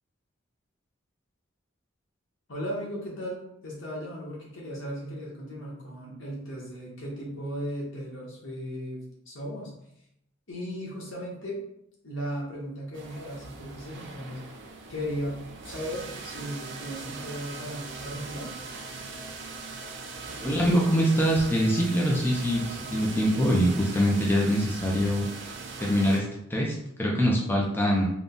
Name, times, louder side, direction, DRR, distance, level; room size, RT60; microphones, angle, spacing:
voice 1, 2.5-9.7 10.5-11.6 12.0-14.4 14.9-18.5, equal, 70° left, -4 dB, 1.4 m, -36 dB
sound 1, 12.9-26.2, right 4 dB, 65° right, 0.6 m, -40 dB
voice 2, 20.4-25.3 25.8-26.2 26.5-28.1, equal, 10° left, -3 dB, 0.6 m, -24 dB
3.7 x 2.3 x 3.9 m, 0.77 s
head